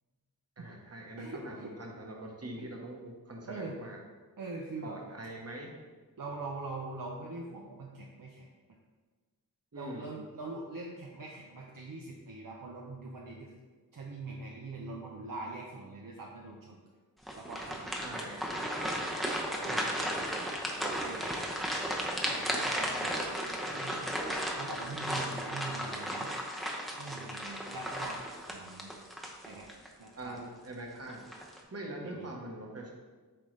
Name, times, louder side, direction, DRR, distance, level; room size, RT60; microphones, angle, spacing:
voice 1, 0.6-4.0 4.8-5.7 9.7-10.1 18.0-18.5 19.6-20.2 30.2-32.9, right 1 dB, 40° right, 0 dB, 1.1 m, -43 dB
voice 2, 1.2-1.8 2.6-2.8 3.5-3.8 4.4-5.0 6.2-8.5 9.7-13.6 13.9-16.8 17.4-17.9 19.6-19.9 20.7-21.3 22.2-24.0 24.5-26.3 27.0-28.9 29.4-29.7 30.0-30.4 32.0-32.3, right 3 dB, 60° right, -1 dB, 0.7 m, -43 dB
sound 1, 17.2-29.9 30.3-30.5 31.1-31.6, equal, ahead, 0.8 m, -35 dB
7.7 x 3.8 x 3.2 m, 1.4 s
wide cardioid pair, 70°, 37 cm